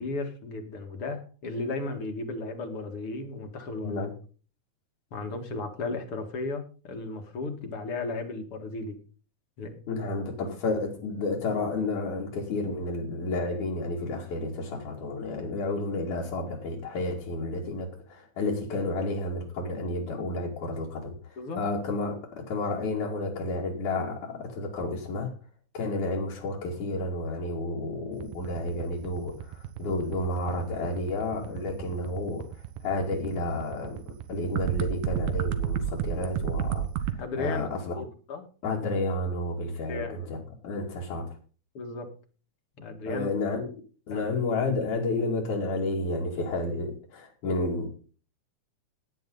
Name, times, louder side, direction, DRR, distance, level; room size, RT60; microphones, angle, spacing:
voice 1, 0.0-4.1 5.1-9.0 9.6-9.8 21.4-21.6 37.2-38.5 39.9-40.4 41.7-42.1 42.8-43.3 44.1-44.3, left 3 dB, 50° left, 6 dB, 2.6 m, -35 dB
voice 2, 9.9-25.3 25.7-34.0 34.3-38.0 38.6-41.3 43.1-43.7 44.1-47.9, left 2 dB, 75° left, -4 dB, 3.9 m, -31 dB
sound 1, 28.1-37.1, right 10 dB, 85° right, 2.6 m, -32 dB
17.0 x 10.5 x 4.0 m, 0.39 s
omnidirectional pair, 3.5 m